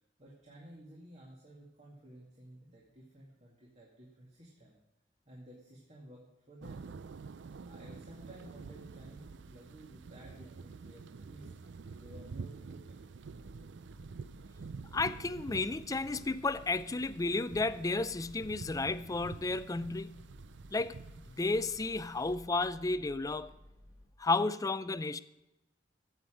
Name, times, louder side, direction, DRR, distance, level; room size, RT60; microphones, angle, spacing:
voice 1, 0.2-4.8 5.3-6.9 7.6-11.5 12.0-13.0, right 1 dB, 40° right, 2.2 m, -53 dB
sound 1, 6.6-22.4, right 5 dB, 75° right, 0.4 m, -48 dB
sound 2, 13.3-24.0, left 1 dB, 10° right, 2.8 m, -56 dB
voice 2, 14.9-20.2 20.7-21.0 21.3-23.5 24.2-25.2, left 3 dB, 20° left, 0.4 m, -32 dB
15.0 x 8.0 x 5.1 m
head